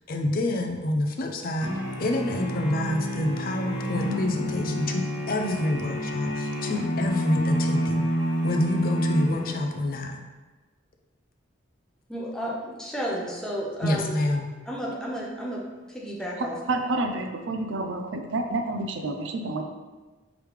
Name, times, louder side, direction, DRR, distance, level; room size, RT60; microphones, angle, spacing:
voice 1, 0.1-1.7 2.0-8.1 8.4-10.2 13.8-14.5, left 1 dB, 50° left, 3 dB, 0.5 m, -28 dB
sound 1, 1.6-9.9, equal, 80° left, 1.3 m, -28 dB
voice 2, 12.1-14.1 14.7-15.6 15.9-16.6, equal, 5° left, -4 dB, 0.7 m, -32 dB
voice 3, 16.7-19.6, right 2 dB, 70° right, 4 dB, 0.5 m, -29 dB
5.0 x 3.3 x 3.2 m, 1.3 s
head